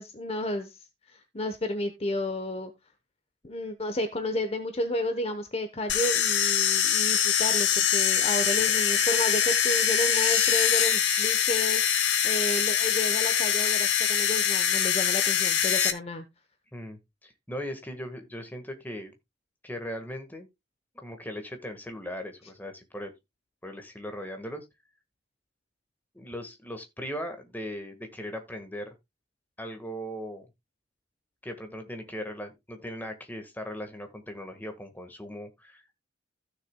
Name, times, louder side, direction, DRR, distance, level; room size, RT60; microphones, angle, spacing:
voice 1, 0.0-2.7 3.4-16.2, left 1 dB, 35° left, 0.9 m, -32 dB
sound 1, 5.9-15.9, left 9 dB, 75° left, 1.1 m, -24 dB
voice 2, 16.7-19.1 19.6-20.5 21.0-23.1 23.6-24.6 26.1-28.9 29.6-30.5 31.4-36.0, equal, 10° left, 1.5 m, -38 dB
15.5 x 6.7 x 2.2 m
head